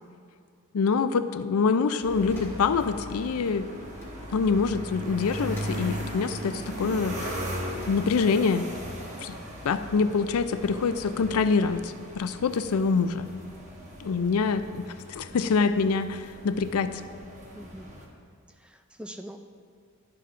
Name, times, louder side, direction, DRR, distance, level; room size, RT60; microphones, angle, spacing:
voice 1, 0.7-3.7 4.3-7.4 7.9-8.7 9.2-9.4 9.6-13.3 14.0-17.0, left 5 dB, 90° left, 11 dB, 0.4 m, -25 dB
sound 1, 2.0-18.1, equal, 35° right, 1.2 m, -38 dB
sound 2, 2.3-2.6 3.9-4.2 5.3-5.8 7.7-7.9, left 1 dB, 10° left, 1.7 m, -49 dB
voice 2, 17.5-17.9 18.6-19.4, equal, 5° right, 6 dB, 0.3 m, -43 dB
11.5 x 9.7 x 2.5 m, 2.2 s
head